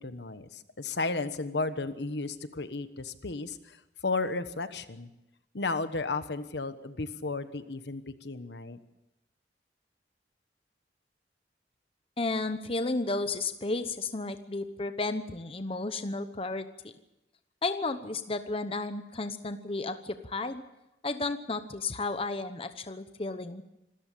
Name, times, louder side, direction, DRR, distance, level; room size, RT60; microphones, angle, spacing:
voice 1, 0.0-5.1 5.5-8.8, left 3 dB, 70° left, 11 dB, 1.2 m, -34 dB
voice 2, 12.2-16.7 17.6-20.6 21.0-23.6, left 3 dB, 30° left, 9 dB, 1.0 m, -33 dB
26.0 x 14.0 x 8.5 m, 0.94 s
head